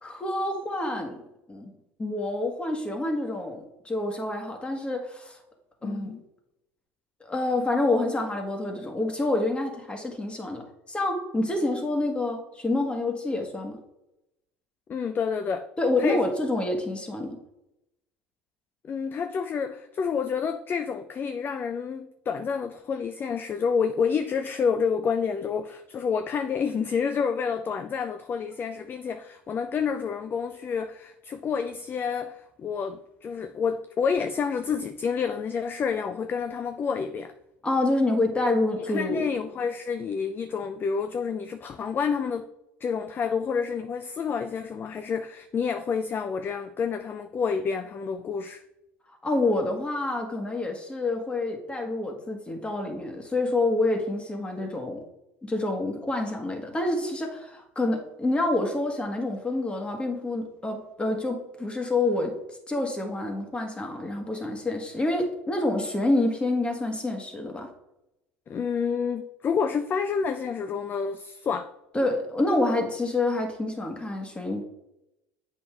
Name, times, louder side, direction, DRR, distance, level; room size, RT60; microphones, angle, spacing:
voice 1, 0.0-1.2 1.5-1.7 2.0-5.4 5.8-6.1 7.3-13.8 15.8-17.4 37.6-39.2 49.2-55.0 55.4-62.4 62.7-67.7 71.9-74.6, left 2 dB, 20° left, 1.7 m, -27 dB
voice 2, 5.8-6.2 14.9-15.7 16.0-16.2 18.8-37.3 38.9-42.5 42.8-48.6 68.5-71.7, left 6 dB, 35° left, 0.4 m, -29 dB
7.7 x 5.6 x 3.3 m
hypercardioid pair, 85°, 6 cm